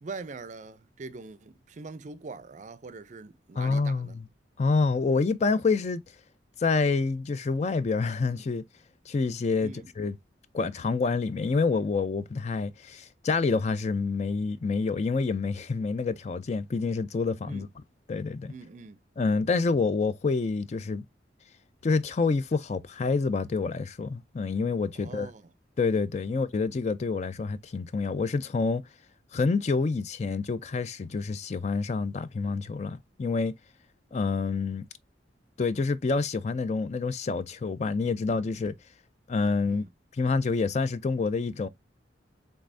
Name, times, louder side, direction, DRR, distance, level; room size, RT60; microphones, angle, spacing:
voice 1, 0.0-4.2 9.6-9.9 17.5-17.7 18.5-19.0 24.9-25.5 26.3-26.4 39.7-39.9, right 4 dB, 40° right, 0.4 m, -43 dB
voice 2, 3.6-4.2 4.6-6.0 6.6-8.6 9.1-10.2 10.5-17.7 18.1-18.5 19.2-21.0 21.8-25.3 25.8-28.8 29.3-33.5 34.1-34.9 35.6-38.7 39.3-39.8 40.1-41.7, left 4 dB, 40° left, 0.4 m, -27 dB
5.3 x 3.3 x 2.5 m
head